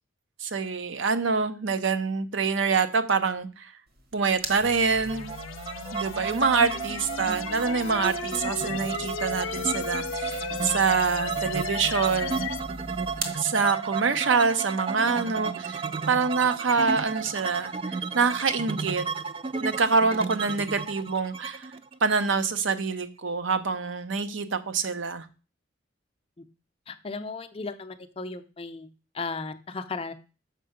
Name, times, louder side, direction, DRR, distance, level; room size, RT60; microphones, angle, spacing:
voice 1, 0.4-3.7 4.1-5.3 5.9-12.5 13.3-19.0 19.6-21.7 22.0-25.2, right 5 dB, 70° right, 10 dB, 0.7 m, -26 dB
sound 1, 3.9-13.5, right 2 dB, 50° right, 1.2 m, -42 dB
sound 2, 4.6-12.6, left 7 dB, 85° left, 0.5 m, -36 dB
sound 3, 5.1-22.8, right 5 dB, 25° right, 0.3 m, -33 dB
voice 2, 26.9-30.1, left 3 dB, 30° left, 10 dB, 0.5 m, -36 dB
6.7 x 5.4 x 5.0 m, 0.34 s
head